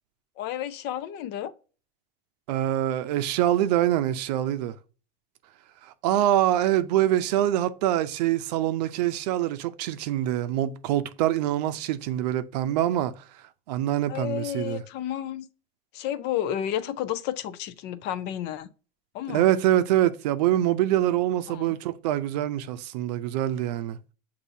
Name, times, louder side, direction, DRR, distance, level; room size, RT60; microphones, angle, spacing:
voice 1, 0.4-1.5 14.1-15.5 15.9-18.7 19.1-19.4 21.5-21.7, left 11 dB, 55° left, 0.6 m, -31 dB
voice 2, 2.5-4.8 5.8-13.2 13.7-14.8 19.3-24.0, right 12 dB, 75° right, 0.5 m, -25 dB
6.7 x 2.7 x 2.6 m
supercardioid pair, 105°, 21 cm